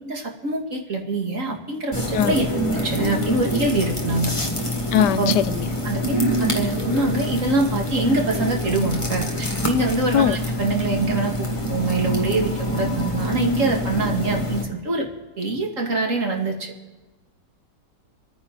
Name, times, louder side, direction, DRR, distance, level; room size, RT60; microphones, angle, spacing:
voice 1, 0.0-2.5 2.8-4.3 5.0-5.4 5.8-15.1 15.4-16.7, right 2 dB, 45° right, 1 dB, 2.2 m, -24 dB
sound 1, 1.9-14.6, equal, 20° left, 1.6 m, -26 dB
voice 2, 4.9-5.7 10.1-10.4, left 10 dB, 75° left, 14 dB, 1.2 m, -20 dB
27.5 x 9.6 x 4.0 m, 1.2 s
omnidirectional pair, 1.9 m